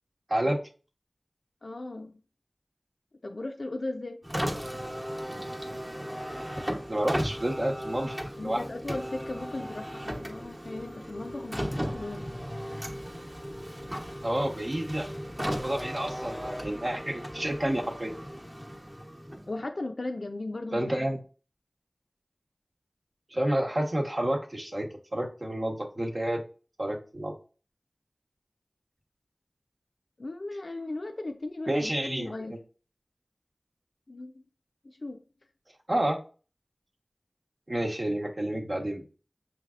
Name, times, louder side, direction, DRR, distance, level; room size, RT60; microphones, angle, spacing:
voice 1, 1.6-2.2 3.2-4.2 8.4-12.2 19.5-21.1 30.2-32.5 34.1-34.3 34.8-35.2, left 2 dB, 75° left, 0.4 m, -37 dB
Car, 4.2-19.6, equal, 25° right, 0.9 m, -36 dB
voice 2, 6.9-8.2 8.4-8.6 14.2-15.1 15.5-18.1 20.7-21.2 23.3-26.4 26.8-27.3 31.7-32.6 35.9-36.2 37.7-39.0, right 1 dB, 55° right, 1.0 m, -29 dB
6.0 x 3.2 x 2.4 m
wide cardioid pair, 55°, 0 cm